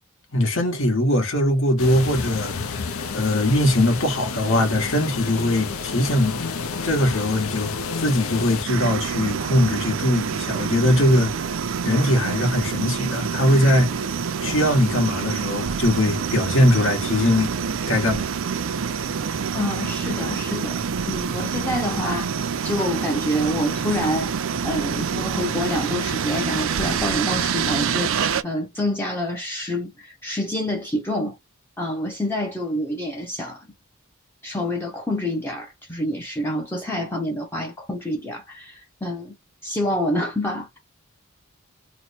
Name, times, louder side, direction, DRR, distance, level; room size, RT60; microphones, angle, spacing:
voice 1, 0.3-2.6 3.1-6.4 6.8-11.5 11.8-13.9 14.4-17.5 17.9-18.3, left 1 dB, 65° left, 1.3 m, -21 dB
sound 1, 1.8-8.7, left 5 dB, 85° left, 0.6 m, -30 dB
sound 2, 8.6-28.4, right 6 dB, 65° right, 0.4 m, -26 dB
voice 2, 19.5-20.8 21.1-22.3 22.6-24.3 24.6-31.4 31.8-33.7 34.4-39.4 39.6-40.8, left 1 dB, 10° left, 0.6 m, -27 dB
3.0 x 2.1 x 4.1 m
head